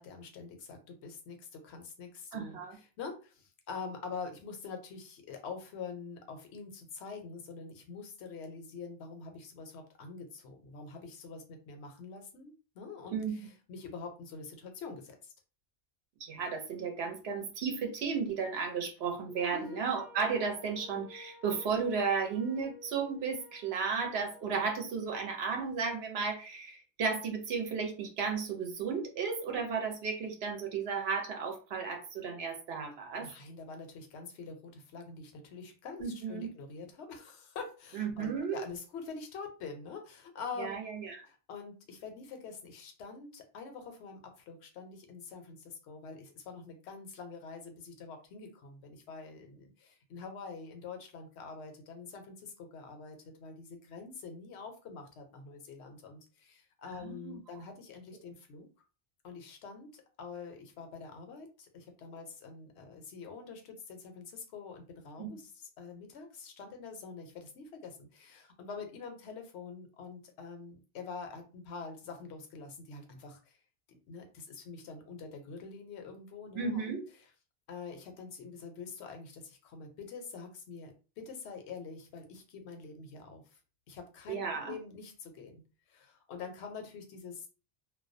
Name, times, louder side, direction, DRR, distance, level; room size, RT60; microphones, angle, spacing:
voice 1, 0.0-15.3 19.5-19.8 33.2-40.8 41.2-58.7 59.2-73.6 74.1-76.9 77.7-83.4 83.9-85.6 85.9-87.5, left 4 dB, 75° left, 5 dB, 0.9 m, -45 dB
voice 2, 2.3-2.8 13.1-13.4 16.2-33.3 36.0-36.5 37.9-38.6 40.6-41.2 57.0-57.4 65.2-65.3 76.5-77.0 84.3-84.8, right 5 dB, 70° right, 4 dB, 0.9 m, -34 dB
Wind instrument woodwind instrument, 19.3-24.6, left 5 dB, 50° left, 0.6 m, -54 dB
2.2 x 2.2 x 2.5 m, 0.35 s
omnidirectional pair, 1.1 m